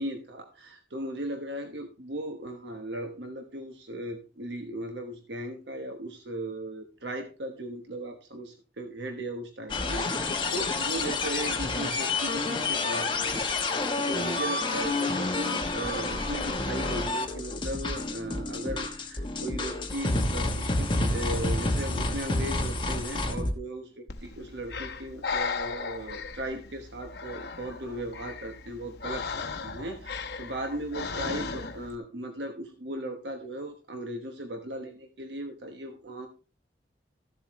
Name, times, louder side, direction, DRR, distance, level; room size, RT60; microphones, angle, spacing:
voice 1, 0.0-13.4 13.7-29.3 29.6-36.3, right 1 dB, 75° right, 5 dB, 1.2 m, -37 dB
sound 1, 9.7-23.5, left 2 dB, 25° left, 1.1 m, -29 dB
Breathing, 24.1-32.0, left 5 dB, 65° left, 0.9 m, -36 dB
14.0 x 7.6 x 3.1 m, 0.34 s
head